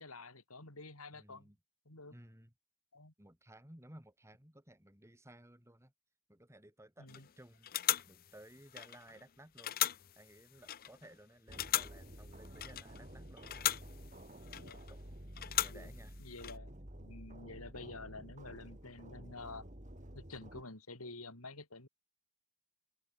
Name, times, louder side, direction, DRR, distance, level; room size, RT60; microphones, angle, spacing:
voice 1, 0.0-1.5 1.8-2.1 2.9-3.1 7.0-7.3 14.6-14.8 15.7-15.9 16.2-16.7 17.0-19.7 20.1-21.9, left 3 dB, 80° left, 5.1 m, -49 dB
voice 2, 1.1-1.6 2.1-2.5 3.2-5.9 6.3-7.7 8.1-9.8 10.2-13.5 14.9-15.0 15.6-16.2, right 1 dB, 15° right, 3.4 m, -57 dB
sound 1, 7.1-7.3 7.6-9.2 9.6-11.1 11.5-13.1 13.4-14.9 15.4-16.6, left 13 dB, 40° left, 0.6 m, -38 dB
sound 2, 11.5-20.6, right 1 dB, 35° right, 4.2 m, -51 dB
head